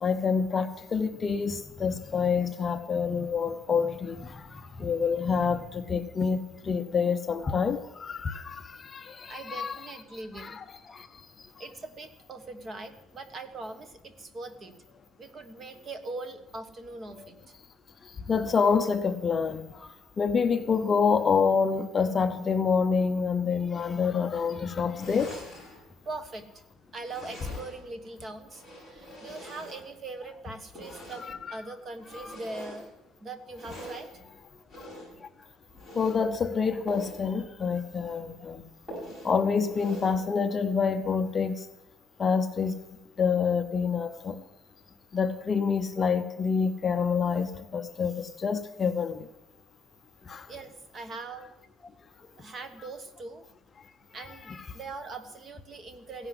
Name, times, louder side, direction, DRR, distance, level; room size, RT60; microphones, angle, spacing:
voice 1, 0.0-9.8 10.3-11.5 17.2-17.3 18.0-25.4 31.3-31.6 32.1-32.4 34.8-34.9 35.2-35.3 35.9-38.7 39.2-41.7 42.2-42.8 43.2-44.4 45.1-49.3 50.2-50.5 53.8-53.9 54.5-54.6, left 5 dB, 25° left, 0.7 m, -27 dB
voice 2, 9.3-10.6 11.6-14.8 15.2-17.4 26.0-26.6 26.9-32.9 33.2-34.1 50.5-51.5 52.4-53.4 54.1-56.3, right 3 dB, 25° right, 1.3 m, -41 dB
sound 1, 25.0-25.8 27.0-27.9 28.5-30.1 30.7-31.4 32.0-32.9 33.5-34.1 34.7-35.2 35.7-36.2 36.8-37.2 37.6-37.7 38.1-38.2 38.9-39.4 39.7-40.2, right 1 dB, 10° right, 7.8 m, -44 dB
16.0 x 11.0 x 7.8 m
cardioid pair, 170°, 0 cm